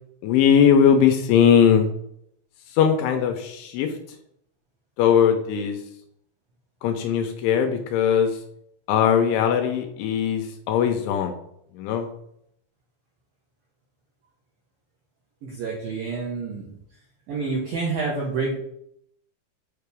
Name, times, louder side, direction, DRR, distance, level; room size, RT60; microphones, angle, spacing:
voice 1, 0.2-1.9 2.8-3.9 5.0-5.8 6.8-8.3 8.9-11.3 11.8-12.1, left 8 dB, 85° left, 5 dB, 3.0 m, -19 dB
voice 2, 15.4-16.7 17.3-18.6, right 4 dB, 80° right, -3 dB, 2.1 m, -28 dB
6.9 x 6.6 x 3.5 m, 0.72 s
omnidirectional pair, 6.0 m